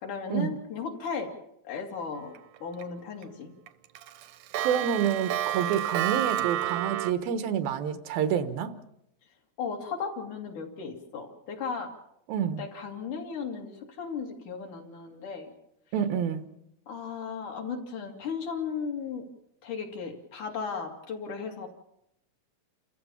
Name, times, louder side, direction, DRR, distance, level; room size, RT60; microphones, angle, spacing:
voice 1, 0.0-1.3 1.6-2.3 2.6-3.5 9.6-11.9 12.6-15.5 16.9-19.3 19.6-21.7, left 5 dB, 60° left, 2 dB, 3.8 m, -35 dB
Clock, 2.3-2.8 3.2-3.3 3.7-7.1, right 13 dB, 70° right, 2.2 m, -30 dB
voice 2, 4.6-8.7 12.3-12.6 15.9-16.5, right 8 dB, 90° right, 10 dB, 3.1 m, -28 dB
29.0 x 15.0 x 7.2 m, 0.79 s
omnidirectional pair, 4.2 m